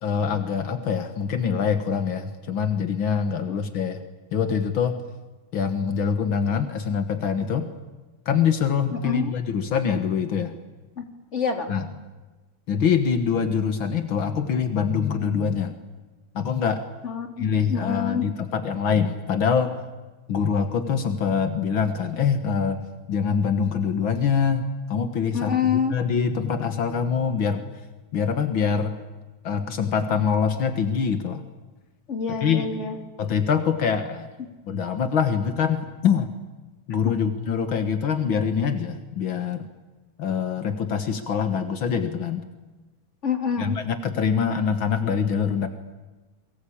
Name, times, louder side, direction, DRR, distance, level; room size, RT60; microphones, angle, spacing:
voice 1, 0.0-4.0 4.3-5.0 5.5-7.7 8.3-10.5 11.7-11.9 12.7-15.7 16.3-16.8 17.4-19.7 20.3-22.8 23.1-27.6 28.1-29.0 29.4-31.4 32.4-32.7 33.2-34.3 34.7-36.3 36.9-39.7 40.2-42.4 43.6-45.7, left 6 dB, 75° left, 9 dB, 2.3 m, -24 dB
voice 2, 8.9-9.3 11.0-11.1 11.3-11.7 17.0-18.2 25.3-26.0 32.1-33.0 37.0-37.1 43.2-43.8, left 6 dB, 35° left, 5 dB, 3.2 m, -26 dB
29.5 x 23.5 x 8.7 m, 1.2 s
omnidirectional pair, 2.2 m